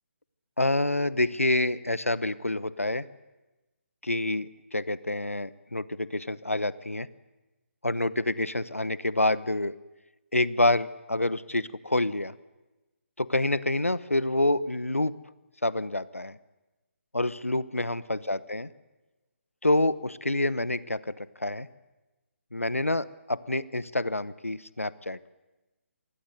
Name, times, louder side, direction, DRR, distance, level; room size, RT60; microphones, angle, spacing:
voice 1, 0.6-3.1 4.0-7.1 7.8-9.7 10.3-12.3 13.2-15.1 15.6-16.4 17.1-18.7 19.6-21.7 22.5-25.3, left 2 dB, 90° left, 18 dB, 0.9 m, -27 dB
27.0 x 20.0 x 7.9 m, 1.1 s
figure-of-eight pair, 140°, 7 cm